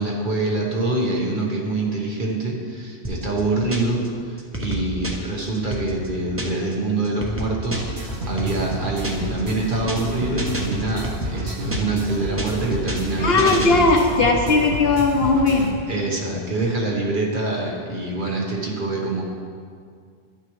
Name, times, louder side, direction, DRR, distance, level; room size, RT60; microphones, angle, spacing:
voice 1, 0.0-13.9 15.9-19.2, right 2 dB, 50° right, -2 dB, 1.4 m, -25 dB
sound 1, 3.0-4.1 4.4-6.7 7.0-9.4 9.7-10.1 10.4-12.1 12.4-14.2, right 1 dB, 15° right, 0.8 m, -31 dB
sound 2, 7.7-15.7, right 1 dB, 65° right, 1.3 m, -30 dB
voice 2, 13.2-15.8, left 3 dB, 60° left, 2 dB, 1.1 m, -18 dB
11.5 x 8.3 x 3.1 m, 2.1 s
omnidirectional pair, 1.1 m